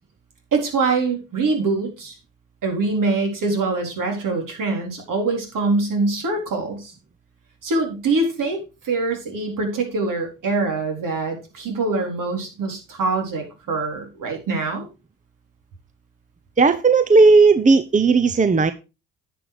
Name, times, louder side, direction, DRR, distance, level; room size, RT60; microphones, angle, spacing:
voice 1, 0.5-2.2 2.6-6.9 7.6-14.9, right 3 dB, 60° right, 4.2 m, -24 dB
voice 2, 16.6-18.7, right 4 dB, 20° right, 0.8 m, -15 dB
10.0 x 6.3 x 5.0 m
supercardioid pair, 70°, 37 cm